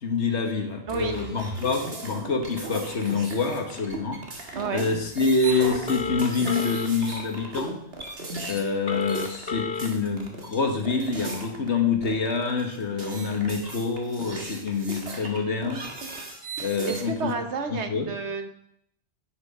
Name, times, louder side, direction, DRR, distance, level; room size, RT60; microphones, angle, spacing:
voice 1, 0.0-7.8 8.5-15.9 16.6-17.3 17.7-18.1, left 4 dB, 75° left, 4 dB, 1.7 m, -26 dB
sound 1, 0.9-11.7 12.0-17.1, right 2 dB, 60° right, 1.9 m, -37 dB
voice 2, 4.6-4.9 16.9-18.5, right 5 dB, 75° right, 7 dB, 1.4 m, -30 dB
Telephone, 5.9-6.9 8.9-9.9, left 5 dB, 55° left, 1.1 m, -31 dB
9.7 x 8.4 x 5.4 m, 0.73 s
omnidirectional pair, 1.2 m